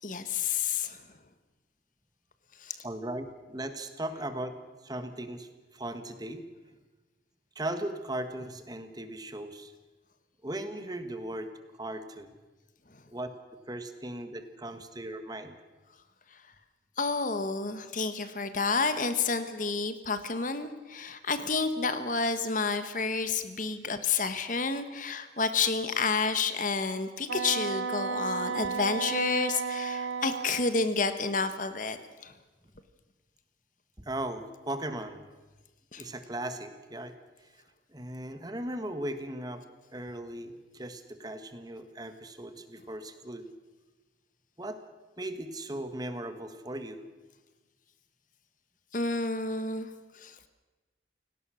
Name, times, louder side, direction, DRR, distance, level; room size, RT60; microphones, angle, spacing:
voice 1, 0.0-1.0 2.6-2.7 17.0-32.0 32.2-32.3 35.9-36.0 48.9-49.9 50.1-50.5, left 4 dB, 45° left, 10 dB, 1.4 m, -30 dB
voice 2, 2.8-4.5 4.8-6.5 7.5-9.7 10.4-11.5 11.8-12.3 13.1-13.3 13.7-15.6 34.0-35.3 35.9-37.1 37.4-37.5 37.9-39.6 39.9-43.5 44.6-44.8 45.2-47.0, right 1 dB, 20° right, 9 dB, 1.5 m, -37 dB
Wind instrument woodwind instrument, 27.3-30.7, right 5 dB, 85° right, 1.2 m, -33 dB
29.5 x 18.0 x 6.4 m, 1.2 s
head